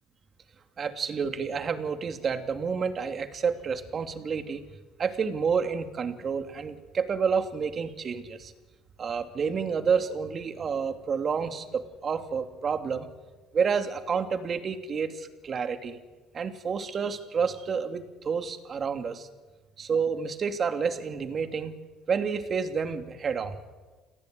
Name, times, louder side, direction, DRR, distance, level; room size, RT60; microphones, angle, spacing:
voice 1, 0.8-4.6 5.0-8.5 9.0-13.1 13.5-16.0 16.3-19.3 19.8-21.8 22.1-23.6, right 6 dB, 40° right, 8 dB, 2.7 m, -29 dB
29.0 x 18.5 x 9.5 m, 1.3 s
cardioid pair, 100°, 0 cm